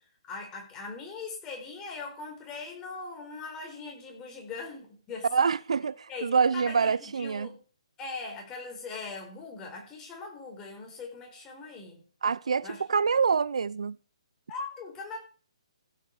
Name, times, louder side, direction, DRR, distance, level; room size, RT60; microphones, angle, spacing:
voice 1, 0.3-5.3 6.1-7.6 8.0-12.0 12.6-12.8 14.5-15.2, left 4 dB, 15° left, 4.6 m, -40 dB
voice 2, 5.3-7.5 12.2-14.0, right 5 dB, 75° right, 0.5 m, -26 dB
15.5 x 8.6 x 4.8 m
hypercardioid pair, 150°, 3 cm